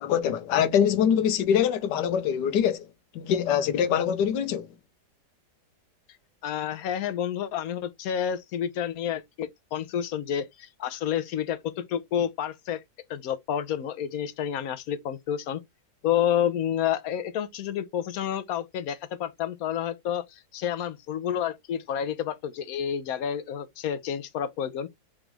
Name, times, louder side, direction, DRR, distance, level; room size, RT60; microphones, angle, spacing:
voice 1, 0.0-2.8 3.1-4.7, left 8 dB, 90° left, 1.4 m, -24 dB
voice 2, 6.4-12.8 13.1-15.6 16.0-24.9, left 9 dB, 65° left, 1.1 m, -29 dB
5.0 x 3.1 x 3.3 m
omnidirectional pair, 1.8 m